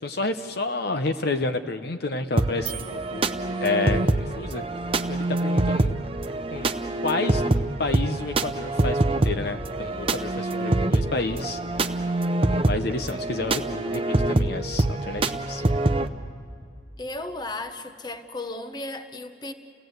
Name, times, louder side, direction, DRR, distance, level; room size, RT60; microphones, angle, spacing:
voice 1, 0.0-3.3 3.6-4.6 5.1-5.9 6.5-6.7 7.0-7.4 7.8-11.6 12.5-14.0 14.3-15.6, left 3 dB, 55° left, 8 dB, 0.8 m, -30 dB
sound 1, 2.4-16.1, right 2 dB, 30° right, 0.7 m, -25 dB
sound 2, 2.7-4.2, right 15 dB, 75° right, 0.8 m, -41 dB
voice 2, 17.0-19.5, left 2 dB, 20° left, 8 dB, 1.0 m, -35 dB
29.5 x 18.0 x 8.0 m, 2.4 s
head